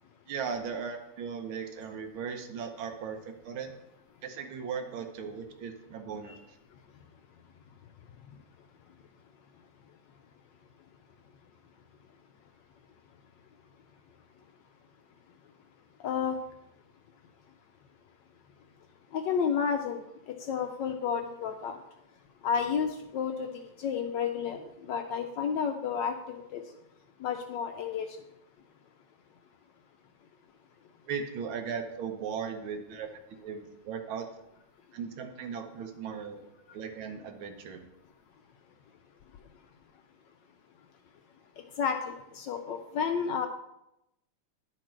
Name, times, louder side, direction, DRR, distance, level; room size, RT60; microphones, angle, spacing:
voice 1, 0.3-3.7 4.2-6.4 31.0-33.1 33.4-34.3 34.9-36.4 36.7-37.8, right 6 dB, 75° right, 5 dB, 1.7 m, -37 dB
voice 2, 16.0-16.4 19.1-20.0 20.4-21.8 22.4-26.6 27.2-28.2 41.8-43.5, left 7 dB, 75° left, 6 dB, 1.0 m, -31 dB
11.0 x 4.4 x 4.4 m, 0.85 s
omnidirectional pair, 2.4 m